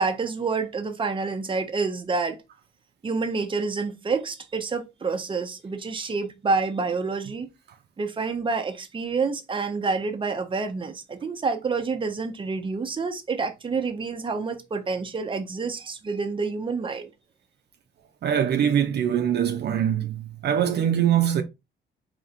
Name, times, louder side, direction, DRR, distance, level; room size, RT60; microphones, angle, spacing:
voice 1, 0.0-2.4 3.0-7.5 8.0-17.1, right 4 dB, 25° right, 0.7 m, -28 dB
voice 2, 18.2-21.4, right 9 dB, 60° right, 0.6 m, -23 dB
3.8 x 2.9 x 2.6 m
cardioid pair, 90°, 20 cm